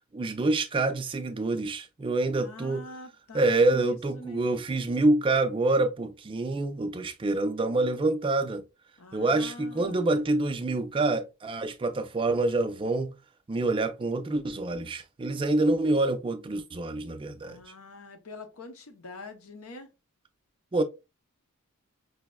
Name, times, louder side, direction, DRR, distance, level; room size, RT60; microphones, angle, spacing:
voice 1, 0.1-2.8 3.3-8.6 9.1-13.1 13.5-17.6 20.7-20.8, right 2 dB, 25° right, 0.4 m, -26 dB
voice 2, 2.3-4.5 9.0-10.1 17.4-19.9, left 2 dB, 90° left, 0.7 m, -45 dB
5.0 x 2.0 x 2.2 m
head